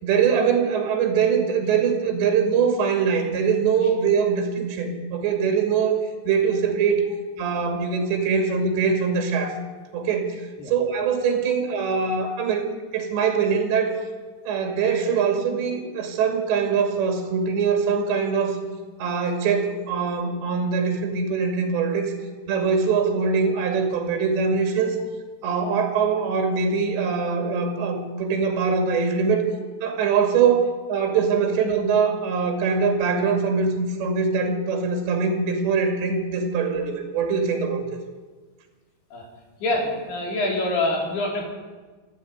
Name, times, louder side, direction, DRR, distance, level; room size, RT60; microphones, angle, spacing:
voice 1, 0.0-7.0 7.4-9.6 9.9-10.4 10.7-13.9 14.5-18.6 19.0-22.1 22.5-25.0 25.4-29.5 29.8-30.6 30.9-37.9, right 5 dB, 65° right, 3 dB, 4.4 m, -23 dB
voice 2, 39.6-41.4, left 2 dB, 55° left, -1 dB, 6.3 m, -25 dB
26.5 x 12.5 x 9.6 m, 1.4 s
omnidirectional pair, 5.8 m